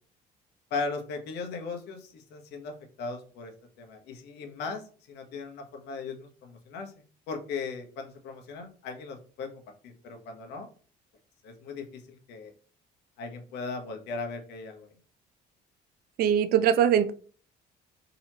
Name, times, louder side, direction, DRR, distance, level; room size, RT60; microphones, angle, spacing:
voice 1, 0.7-3.5 3.8-6.9 7.3-9.5 9.8-10.7 11.4-12.5 13.2-14.9, left 4 dB, 80° left, 4 dB, 1.0 m, -38 dB
voice 2, 16.2-17.1, right 9 dB, 65° right, 13 dB, 0.5 m, -22 dB
4.0 x 2.9 x 2.8 m, 0.41 s
cardioid pair, 110°, 17 cm